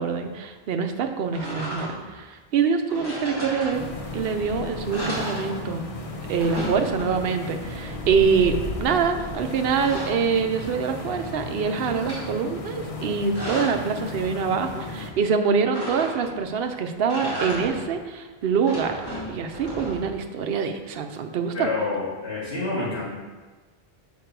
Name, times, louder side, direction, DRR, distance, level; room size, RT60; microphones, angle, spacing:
voice 1, 0.0-3.9 4.1-5.9 6.3-19.0 19.3-21.7, right 6 dB, 70° right, 7 dB, 0.8 m, -25 dB
sound 1, 1.3-2.2 2.9-4.2 4.5-4.6 4.9-6.0 6.2-7.5 9.2-11.0 11.4-12.3 13.0-13.9 15.7-16.5 17.0-18.0 18.5-20.3, right 1 dB, 20° left, 1.8 m, -35 dB
sound 2, 3.7-15.1, left 2 dB, 40° left, 0.7 m, -35 dB
voice 2, 21.5-23.1, left 3 dB, 75° left, -12 dB, 2.3 m, -28 dB
6.5 x 5.1 x 4.6 m, 1.3 s
omnidirectional pair, 1.1 m